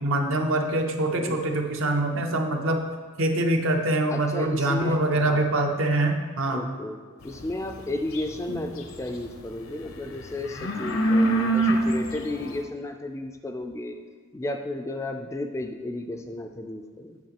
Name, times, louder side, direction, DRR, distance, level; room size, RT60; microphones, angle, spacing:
voice 1, 0.0-2.8 3.2-6.6 8.5-8.6, right 1 dB, 70° right, 3 dB, 0.7 m, -24 dB
voice 2, 1.1-1.6 4.1-5.5 6.5-7.0 7.2-14.0 14.3-17.2, left 1 dB, 15° left, 5 dB, 0.3 m, -33 dB
sound 1, 7.2-9.3 9.6-12.6, right 2 dB, 80° left, 0.7 m, -25 dB
8.3 x 6.5 x 2.9 m, 1.4 s
head